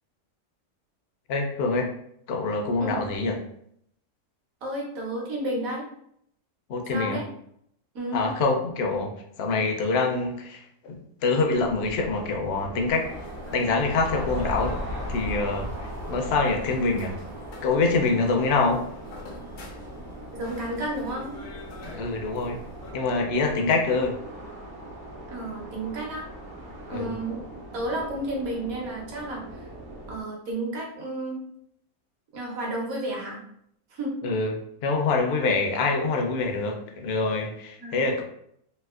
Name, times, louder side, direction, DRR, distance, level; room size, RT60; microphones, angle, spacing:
voice 1, 1.3-1.9 2.3-3.4 6.7-7.2 8.1-9.1 9.4-13.0 13.5-17.2 17.6-18.9 21.9-22.6 22.9-24.1 26.9-27.2 34.2-34.5 34.8-38.2, left 3 dB, 65° left, 3 dB, 0.6 m, -25 dB
voice 2, 4.6-5.9 6.9-7.2 7.9-8.3 20.3-21.3 25.3-26.3 26.9-27.4 27.7-29.6 30.1-31.4 32.3-33.4 33.9-34.1 37.8-38.0, right 1 dB, 75° right, -1 dB, 1.3 m, -31 dB
sound 1, 11.5-30.2, equal, 90° right, 1.2 m, -39 dB
sound 2, 12.9-22.9, left 1 dB, 85° left, 1.1 m, -44 dB
3.2 x 2.8 x 2.3 m, 0.71 s
omnidirectional pair, 1.5 m